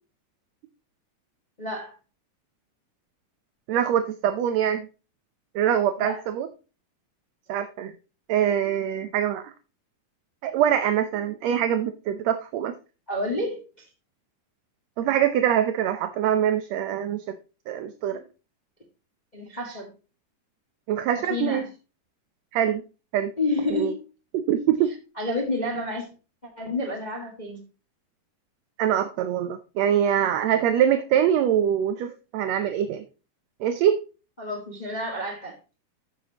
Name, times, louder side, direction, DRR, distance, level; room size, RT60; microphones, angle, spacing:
voice 1, 1.6-1.9 6.0-6.2 13.1-13.8 19.3-19.9 21.1-21.7 23.4-24.0 25.2-26.1 26.4-27.6 34.4-35.6, left 2 dB, 20° left, 1 dB, 1.1 m, -29 dB
voice 2, 3.7-4.9 5.5-6.5 7.5-7.9 8.3-9.5 10.4-12.7 15.0-17.2 17.7-18.2 20.9-21.6 22.5-22.8 23.1-23.3 23.7-23.9 24.3-24.9 28.8-33.0 33.6-34.0, right 10 dB, 75° right, 9 dB, 1.7 m, -24 dB
13.0 x 6.1 x 2.9 m, 0.33 s
omnidirectional pair, 3.6 m